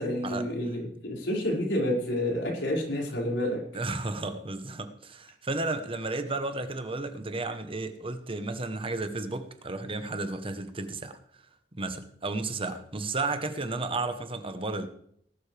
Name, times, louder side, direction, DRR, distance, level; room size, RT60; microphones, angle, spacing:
voice 1, 0.0-3.6, left 1 dB, 80° left, 5.6 m, -29 dB
voice 2, 3.7-11.2 11.8-14.9, right 3 dB, 30° right, 1.0 m, -33 dB
19.0 x 12.0 x 3.4 m
head